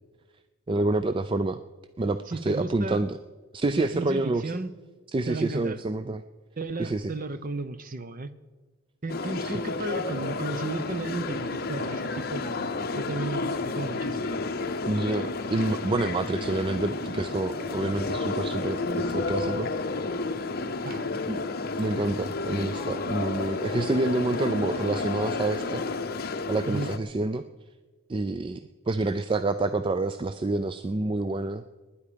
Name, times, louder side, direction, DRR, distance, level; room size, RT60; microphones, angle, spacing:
voice 1, 0.7-1.6 2.0-3.2 3.5-4.5 5.1-6.2 6.8-7.1 9.5-9.6 14.9-19.7 21.3-21.4 21.8-25.8 26.5-27.4 28.1-28.6 28.9-31.6, right 2 dB, 25° right, 11 dB, 0.3 m, -28 dB
voice 2, 2.3-3.0 3.7-4.7 5.3-5.8 6.6-8.3 9.0-14.3 20.8-21.1 26.7-26.9, right 2 dB, 40° right, 12 dB, 0.7 m, -34 dB
sound 1, 9.1-27.0, left 3 dB, 45° left, 0.7 m, -31 dB
sound 2, 16.9-19.6, equal, 60° right, 6.1 m, -44 dB
19.5 x 10.0 x 5.1 m, 1.3 s
head